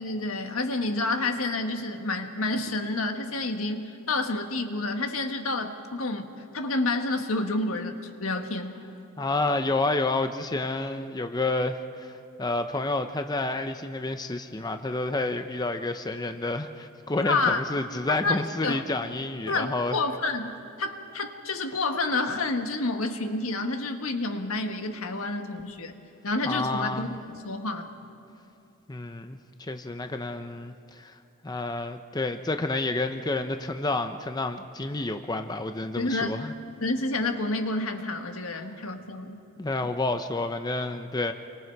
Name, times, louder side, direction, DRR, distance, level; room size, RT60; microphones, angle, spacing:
voice 1, 0.0-7.9 8.2-8.7 17.2-17.6 18.1-18.8 19.5-25.9 26.2-27.1 27.4-27.9 36.0-36.3 36.8-39.4, left 2 dB, 75° left, 5 dB, 1.6 m, -29 dB
voice 2, 9.2-20.0 26.4-27.1 28.9-31.2 31.4-36.5 38.6-38.7 39.6-41.3, left 2 dB, 20° left, 7 dB, 0.6 m, -29 dB
29.0 x 24.5 x 4.7 m, 2.7 s
head